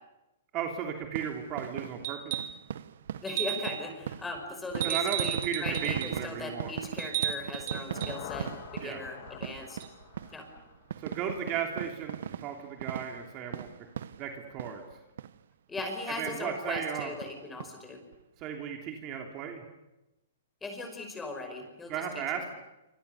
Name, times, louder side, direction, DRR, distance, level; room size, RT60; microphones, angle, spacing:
voice 1, 0.5-2.3 4.8-6.7 8.8-9.0 11.0-13.9 14.2-14.8 16.2-17.1 18.4-19.6 21.9-22.5, right 8 dB, 30° right, 3 dB, 3.0 m, -35 dB
sound 1, 1.0-14.9 15.2-15.4 15.8-15.9 16.3-16.4 16.8-17.7 18.1-18.2 18.4-18.5, right 9 dB, 70° right, 1.1 m, -39 dB
sound 2, 2.0-2.6 3.3-3.9 4.8-6.2 7.0-8.2 9.8-9.9, right 12 dB, 45° right, 2.9 m, -34 dB
voice 2, 3.2-9.8 10.3-10.5 15.7-18.0 20.6-22.4, left 2 dB, 10° left, 5 dB, 5.7 m, -38 dB
sound 3, 7.5-11.5, left 12 dB, 40° left, 2.2 m, -47 dB
27.0 x 26.5 x 7.0 m, 0.97 s
hypercardioid pair, 155°, 0 cm